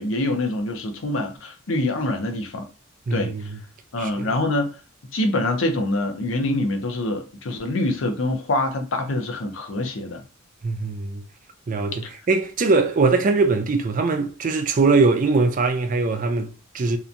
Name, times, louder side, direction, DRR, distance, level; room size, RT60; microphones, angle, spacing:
voice 1, 0.0-2.7 3.1-3.3 3.9-4.8 5.1-10.2 12.0-12.1, left 1 dB, 75° left, 0.6 m, -25 dB
voice 2, 3.1-3.6 4.0-4.4 10.6-11.2 11.7-17.0, right 3 dB, 40° right, 0.3 m, -21 dB
2.8 x 2.2 x 2.5 m
head